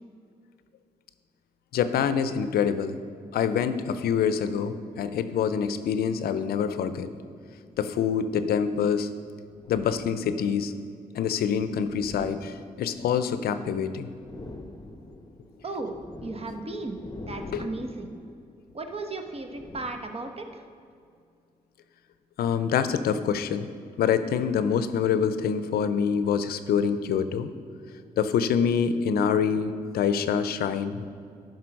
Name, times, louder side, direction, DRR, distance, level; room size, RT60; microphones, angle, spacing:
voice 1, 1.7-3.0 3.3-7.1 7.8-9.1 9.7-10.7 11.1-14.1 17.5-17.6 22.4-23.7 24.0-27.5 28.2-31.0, left 7 dB, 80° left, 11 dB, 0.5 m, -26 dB
sound 1, 7.4-8.9 9.5-10.6 11.3-13.7 14.0-20.6, left 2 dB, 25° left, 0.8 m, -45 dB
voice 2, 15.6-15.9 16.2-18.1 18.7-20.7, right 2 dB, 40° right, 5 dB, 1.0 m, -35 dB
11.0 x 4.0 x 5.2 m, 2.3 s
supercardioid pair, 50°, 16 cm